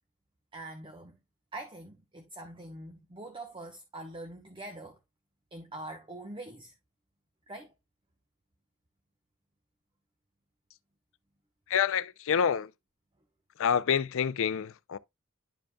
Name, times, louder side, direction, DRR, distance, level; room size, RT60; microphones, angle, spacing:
voice 1, 0.5-1.2 1.5-5.0 5.5-6.7 7.5-7.7, right 2 dB, 25° right, 0.9 m, -44 dB
voice 2, 11.7-12.7 13.6-15.0, left 7 dB, 65° left, 0.4 m, -27 dB
11.0 x 5.1 x 2.2 m
head